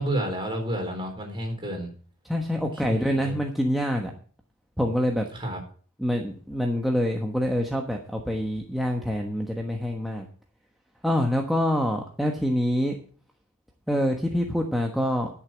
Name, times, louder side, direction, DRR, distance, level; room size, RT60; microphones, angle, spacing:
voice 1, 0.0-1.9 2.5-3.4 5.3-5.6, right 1 dB, 25° right, 1 dB, 4.2 m, -31 dB
voice 2, 2.2-4.1 4.8-5.3 6.0-10.3 11.0-13.0 13.9-15.3, equal, ahead, 1 dB, 1.2 m, -26 dB
12.0 x 6.9 x 7.4 m, 0.43 s
head